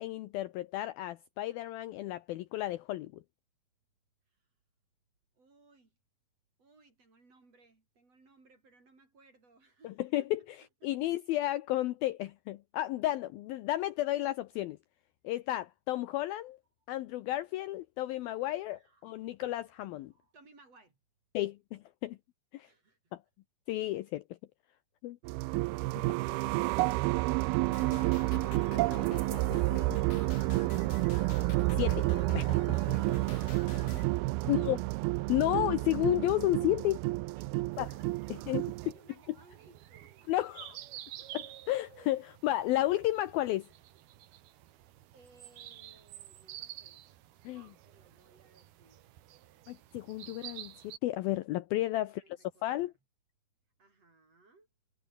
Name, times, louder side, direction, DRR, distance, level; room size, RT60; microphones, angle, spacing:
voice 1, 0.0-3.2 10.0-10.4 10.8-14.8 15.2-16.6 16.9-20.1 21.3-22.2 22.5-22.7 23.1-23.2 23.7-24.2 25.0-25.2 26.0-26.1 31.8-32.1 32.3-32.5 34.5-34.8 35.3-37.0 37.8-37.9 38.5-38.6 40.3-40.7 41.3-43.7 47.4-47.7 49.7-52.2 52.6-52.9, left 15 dB, 75° left, 2.3 m, -32 dB
voice 2, 5.4-6.0 6.6-11.1 18.3-18.4 18.7-19.2 20.1-21.0 22.6-23.1 33.7-34.1 34.4-34.8 37.3-40.5 41.0-41.4 44.4-47.0 47.4-49.1 51.9-53.0 53.8-54.7, right 3 dB, 35° right, 7.0 m, -63 dB
sound 1, 25.2-38.9, right 21 dB, 90° right, 2.2 m, -30 dB
sound 2, 27.7-34.1, left 11 dB, 60° left, 2.6 m, -46 dB
sound 3, 37.7-51.0, right 13 dB, 70° right, 3.2 m, -50 dB
omnidirectional pair, 5.0 m